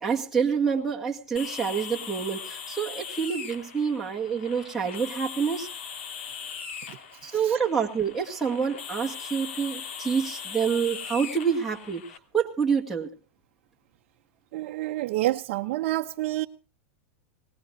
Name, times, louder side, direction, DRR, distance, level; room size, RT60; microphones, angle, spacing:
voice 1, 0.0-5.7 7.2-12.0 12.3-13.1, right 6 dB, 5° right, 2.1 m, -27 dB
sound 1, 1.4-12.2, left 7 dB, 75° left, 2.3 m, -39 dB
voice 2, 7.3-7.6 14.5-16.5, right 16 dB, 55° right, 0.9 m, -28 dB
23.5 x 19.5 x 2.6 m
supercardioid pair, 145°, 7 cm